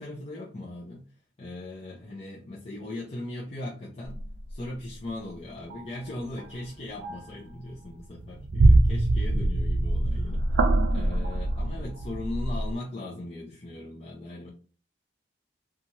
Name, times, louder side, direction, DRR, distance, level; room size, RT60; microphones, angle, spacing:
voice 1, 0.0-4.2 4.5-14.5, left 1 dB, 35° left, -4 dB, 0.6 m, -39 dB
horror ambient factory, 4.0-4.6 5.7-5.8 6.3-6.6 7.0-7.3 7.7-12.7, right 2 dB, 75° right, 0.4 m, -24 dB
2.7 x 2.4 x 2.8 m, 0.40 s
head